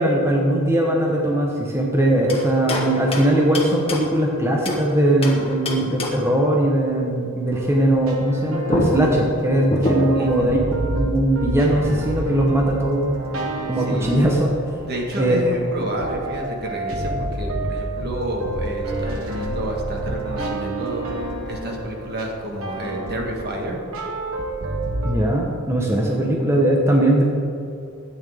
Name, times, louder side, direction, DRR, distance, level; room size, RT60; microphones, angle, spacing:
voice 1, 0.0-10.6 11.0-13.2 13.7-14.5 15.2-15.6 25.0-27.2, right 1 dB, 15° right, -1 dB, 1.0 m, -20 dB
sound 1, 2.3-4.9 5.2-6.4 8.3-8.4 8.7-10.3, left 1 dB, 30° left, 1.3 m, -27 dB
sound 2, 7.5-25.2, right 2 dB, 75° right, 1.4 m, -29 dB
voice 2, 10.1-10.6 13.8-14.3 14.8-21.0 21.4-23.8, right 1 dB, 50° right, 0 dB, 1.6 m, -29 dB
12.5 x 8.8 x 3.6 m, 2.5 s
head